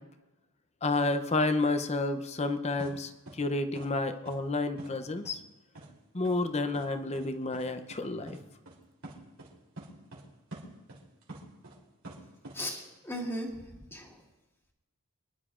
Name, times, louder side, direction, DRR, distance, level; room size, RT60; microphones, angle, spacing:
voice 1, 0.8-5.4 6.1-8.4, left 2 dB, 30° left, 8 dB, 0.7 m, -30 dB
sound 1, 2.8-2.9 3.3-3.4 3.7-3.9 4.2-4.4 4.8-4.9 5.2-5.4 5.7-5.9 6.2-6.4 6.7-6.9 7.1-7.3 7.5-7.6 7.9-8.0 8.3-8.4 8.7-8.8 9.0-9.5 9.8-10.2 10.5-11.8 12.0-12.6, right 2 dB, 65° right, 3.2 m, -45 dB
voice 2, 12.5-14.3, equal, 10° left, -1 dB, 1.9 m, -38 dB
26.0 x 10.5 x 2.5 m, 1.0 s
head